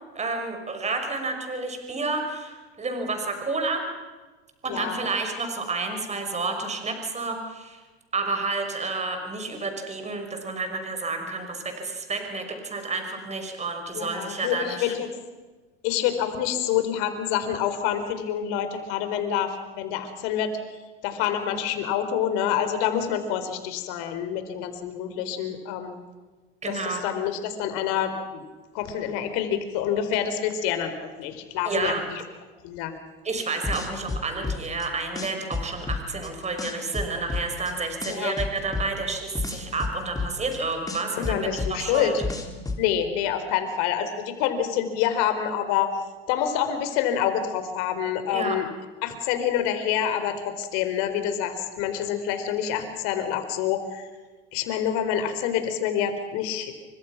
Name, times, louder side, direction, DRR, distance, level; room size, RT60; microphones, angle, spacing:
voice 1, 0.1-3.8 4.6-7.8 8.1-15.0 26.6-27.0 31.6-32.0 33.2-42.1 48.3-48.5, right 3 dB, 20° right, 5 dB, 5.7 m, -30 dB
voice 2, 4.7-5.1 13.9-15.1 15.8-20.6 21.0-26.0 26.7-28.4 28.7-32.2 32.6-32.9 38.1-38.4 41.2-42.1 42.8-45.9 46.3-48.7 49.0-54.1 54.5-56.7, left 9 dB, 60° left, 8 dB, 4.3 m, -27 dB
sound 1, 33.4-34.9 35.2-36.3 36.6-37.7 38.0-40.6 40.9-42.8, left 3 dB, 10° left, 4.1 m, -30 dB
29.0 x 24.5 x 6.0 m, 1.3 s
hypercardioid pair, 90°, 30 cm